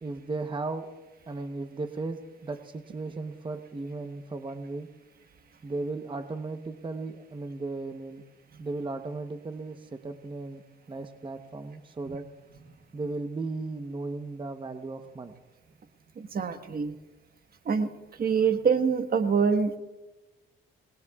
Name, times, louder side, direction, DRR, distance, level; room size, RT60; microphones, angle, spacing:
voice 1, 0.0-0.9 1.3-4.9 5.6-8.2 8.6-10.6 10.9-12.2 12.9-15.3, right 3 dB, 25° right, 6 dB, 1.0 m, -36 dB
voice 2, 16.2-17.0 17.6-19.8, right 6 dB, 50° right, 7 dB, 1.4 m, -26 dB
26.5 x 20.5 x 2.4 m, 1.1 s
cardioid pair, 90°, 20 cm